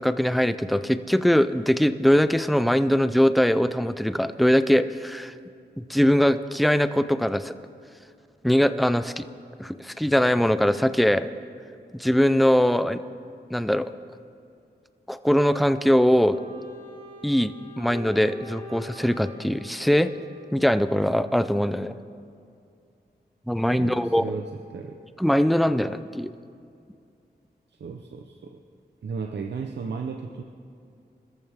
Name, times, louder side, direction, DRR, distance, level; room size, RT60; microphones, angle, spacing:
voice 1, 0.0-5.3 5.8-7.5 8.4-9.2 9.6-11.3 11.9-13.0 13.5-13.9 15.1-16.4 17.2-20.1 20.5-22.0 23.5-24.2 25.2-26.3, equal, ahead, 12 dB, 0.5 m, -21 dB
Wind instrument woodwind instrument, 16.3-20.9, left 2 dB, 45° right, 5.1 m, -44 dB
voice 2, 23.8-25.0 27.7-28.6 29.0-30.4, right 5 dB, 85° right, 3 dB, 0.9 m, -35 dB
26.0 x 14.0 x 3.6 m, 2.4 s
wide cardioid pair, 80°, 18 cm